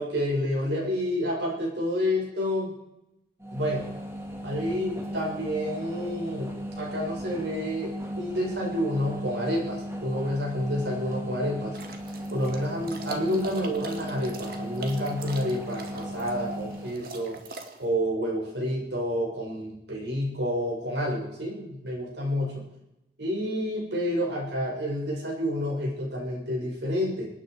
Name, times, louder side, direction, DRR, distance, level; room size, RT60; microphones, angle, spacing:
voice 1, 0.0-2.7 3.5-3.9 4.4-6.5 6.8-11.8 12.3-17.4 17.8-22.6 23.2-27.3, equal, 85° right, -2 dB, 6.7 m, -29 dB
sound 1, 3.4-17.0, equal, 15° right, 2.1 m, -36 dB
sound 2, 11.7-17.8, right 3 dB, 55° right, 2.0 m, -43 dB
27.0 x 9.6 x 4.9 m, 0.90 s
head